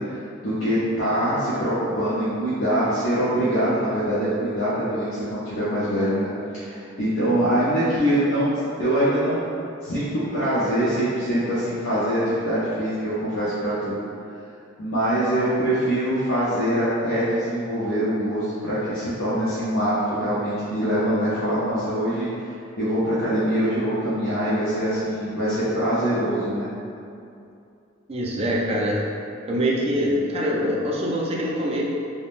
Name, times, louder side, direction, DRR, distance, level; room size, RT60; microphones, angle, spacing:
voice 1, 0.0-8.5 8.8-9.5 9.8-14.0 14.8-22.3 22.8-26.7, equal, 80° left, -11 dB, 0.6 m, -24 dB
voice 2, 28.1-29.0 29.5-31.8, equal, 30° right, -3 dB, 0.4 m, -24 dB
3.5 x 2.1 x 2.4 m, 2.6 s
head